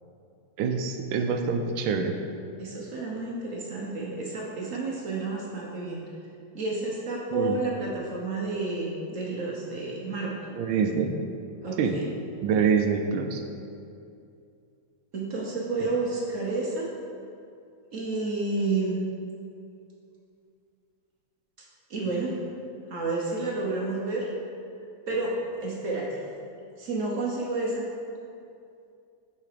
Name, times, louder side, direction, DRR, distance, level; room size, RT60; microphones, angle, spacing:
voice 1, 0.6-2.1 7.3-7.6 10.5-11.1 11.8-12.0 12.4-13.4, right 6 dB, 75° right, 5 dB, 1.3 m, -25 dB
voice 2, 2.6-6.0 6.5-10.4 11.6-12.0 15.1-16.9 17.9-19.0 21.9-22.4 22.9-24.3 25.1-26.2 26.8-27.9, right 3 dB, 55° right, -3 dB, 1.0 m, -30 dB
7.4 x 4.9 x 4.9 m, 2.5 s
omnidirectional pair, 2.3 m